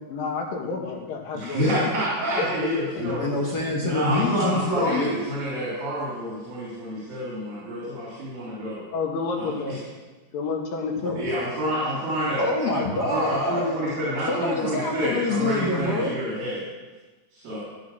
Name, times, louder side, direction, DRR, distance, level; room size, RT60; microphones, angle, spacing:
voice 1, 0.1-1.9 2.4-2.5 8.9-9.8 10.3-11.3, left 4 dB, 85° left, 1 dB, 3.6 m, -30 dB
voice 2, 1.3-3.2 3.8-8.9 9.4-9.8 11.1-12.5 12.9-16.7 17.3-17.6, equal, 85° right, -7 dB, 5.1 m, -28 dB
voice 3, 2.9-5.2 11.0-11.2 12.4-13.8 14.3-16.2, left 2 dB, 45° left, -2 dB, 1.3 m, -26 dB
16.0 x 9.5 x 6.2 m, 1.3 s
omnidirectional pair, 3.9 m